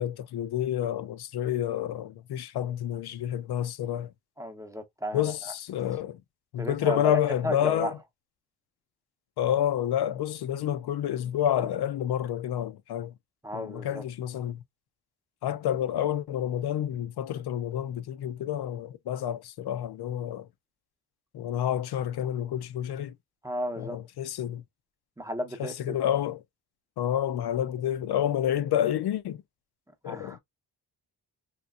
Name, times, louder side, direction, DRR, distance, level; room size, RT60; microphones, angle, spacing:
voice 1, 0.0-4.1 5.1-6.2 6.5-8.0 9.4-13.1 13.5-14.6 15.4-20.5 21.3-23.1 23.8-24.6 25.6-26.4 27.0-29.4 30.0-30.4, left 10 dB, 70° left, 0.5 m, -29 dB
voice 2, 4.4-5.5 6.6-8.0 13.4-14.0 23.4-24.0 25.2-26.0 30.0-30.4, equal, 10° right, 0.7 m, -34 dB
3.3 x 2.9 x 2.3 m
cardioid pair, 100°, 40 cm